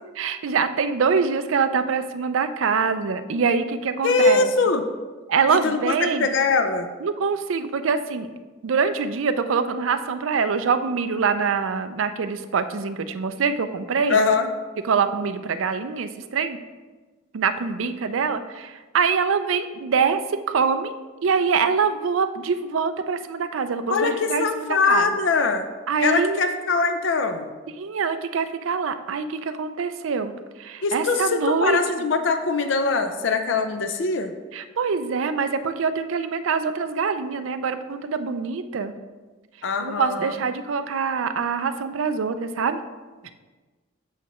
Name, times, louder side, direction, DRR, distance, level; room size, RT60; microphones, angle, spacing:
voice 1, 0.2-4.5 5.3-6.3 7.0-8.3 8.6-14.2 14.8-16.6 17.3-20.9 21.2-25.1 25.9-26.4 27.8-30.3 30.6-31.8 34.5-38.9 39.8-42.8, right 5 dB, 85° right, 10 dB, 0.5 m, -24 dB
voice 2, 4.0-4.8 5.5-6.9 14.1-14.5 23.9-25.7 26.0-27.5 30.8-34.3 39.6-40.3, left 4 dB, 70° left, 7 dB, 0.5 m, -22 dB
8.2 x 5.7 x 3.0 m, 1.3 s
head